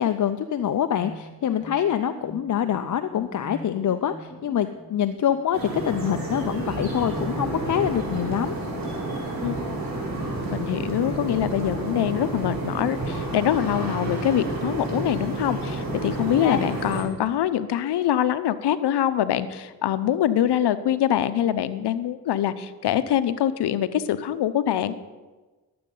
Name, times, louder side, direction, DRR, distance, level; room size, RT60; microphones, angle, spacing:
voice 1, 0.0-8.6 16.4-16.7, left 9 dB, 50° left, 9 dB, 0.5 m, -25 dB
sound 1, 1.0-10.7, equal, 10° left, 2.7 m, -42 dB
sound 2, 5.5-17.0, right 2 dB, 55° right, 4.1 m, -30 dB
voice 2, 10.5-25.0, left 11 dB, 80° left, 13 dB, 0.7 m, -24 dB
11.5 x 7.7 x 5.4 m, 1.2 s
cardioid pair, 65°, 40 cm